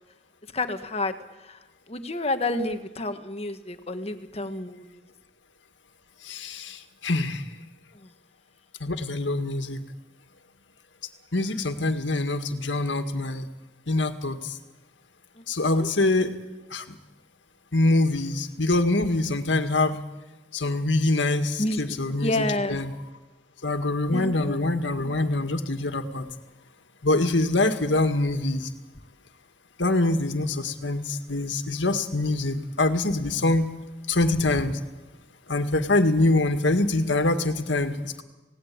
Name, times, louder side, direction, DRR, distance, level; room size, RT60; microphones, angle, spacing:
voice 1, 0.5-1.1 1.5-1.6 1.9-4.9 15.4-15.9 21.6-21.8 22.2-22.8 24.1-24.6, left 2 dB, 35° left, 8 dB, 1.5 m, -29 dB
voice 2, 6.2-7.4 8.8-9.8 11.3-13.5 13.9-14.6 15.5-16.3 16.7-17.0 17.7-20.0 20.5-22.9 23.6-26.3 27.0-28.7 29.8-33.7 34.1-34.8 35.5-38.2, left 2 dB, 85° left, 7 dB, 1.9 m, -24 dB
28.0 x 18.0 x 8.7 m, 1.2 s
head